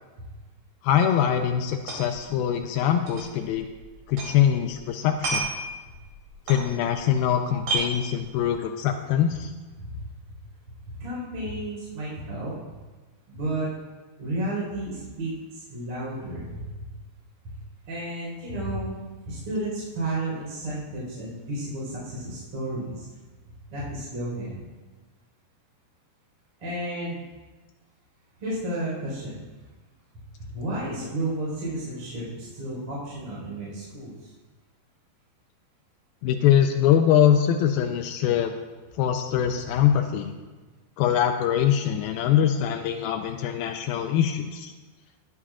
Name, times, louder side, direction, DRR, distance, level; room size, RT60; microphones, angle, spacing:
voice 1, 0.8-3.7 4.1-5.5 6.5-9.5 36.2-38.5 39.0-40.3 41.0-44.7, left 9 dB, 85° left, 5 dB, 2.1 m, -23 dB
sound 1, 1.3-1.4 1.6-2.2 2.5-2.6 3.1-4.4 4.7-7.2 7.5-8.6, right 3 dB, 70° right, 4.7 m, -31 dB
voice 2, 10.9-12.6 13.3-13.7 14.2-16.9 17.4-17.5 17.8-19.0 19.2-23.1 23.7-24.6 26.6-27.2 28.4-29.4 30.4-34.3 39.8-39.9, right 1 dB, 35° right, -7 dB, 5.1 m, -32 dB
19.5 x 9.6 x 2.5 m, 1.3 s
omnidirectional pair, 4.9 m